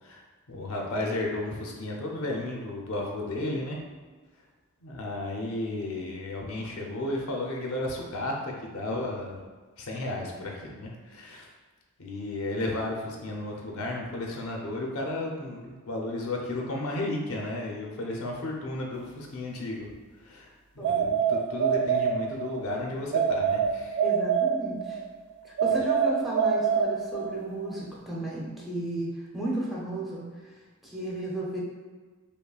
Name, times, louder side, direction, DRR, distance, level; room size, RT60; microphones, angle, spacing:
voice 1, 0.0-3.8 4.8-9.4 9.8-11.5 12.0-19.9 20.2-24.0, left 2 dB, 70° left, -1 dB, 0.6 m, -33 dB
sound 1, 20.8-22.6 23.1-25.0 25.6-27.4, right 7 dB, 50° right, 0.3 m, -25 dB
voice 2, 24.0-25.0 25.6-30.2 30.8-31.6, right 1 dB, ahead, -6 dB, 0.7 m, -33 dB
5.4 x 2.1 x 2.3 m, 1.4 s
head